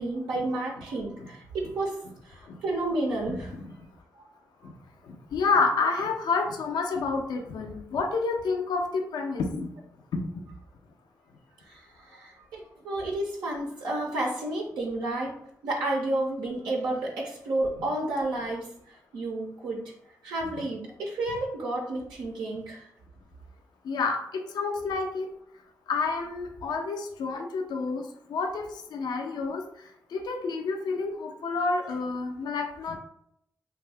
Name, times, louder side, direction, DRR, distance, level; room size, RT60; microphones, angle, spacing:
voice 1, 0.0-2.0 2.2-3.5 11.7-15.3 15.6-18.7 19.1-19.8 20.2-22.9, right 2 dB, 90° right, -3 dB, 0.5 m, -31 dB
voice 2, 3.3-3.8 4.6-4.7 5.0-9.7 10.1-10.4 23.8-25.3 25.9-28.0 28.3-29.6 30.1-33.0, left 4 dB, 75° left, 4 dB, 0.4 m, -29 dB
2.6 x 2.2 x 3.3 m, 0.72 s
supercardioid pair, 40°, 7 cm